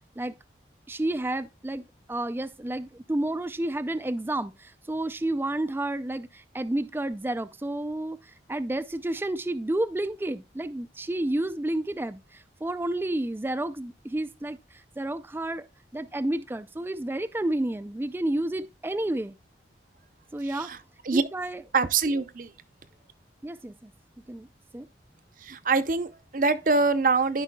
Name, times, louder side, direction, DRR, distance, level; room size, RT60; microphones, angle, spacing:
voice 1, 0.9-1.8 2.1-15.7 15.9-19.3 20.3-20.7 21.1-21.6 23.4-23.9 24.3-24.5 24.7-24.9, right 1 dB, 10° right, 0.3 m, -30 dB
voice 2, 20.4-20.8 21.0-21.2 21.7-22.5 25.4-27.4, right 4 dB, 45° right, 0.6 m, -24 dB
13.5 x 5.5 x 2.2 m
head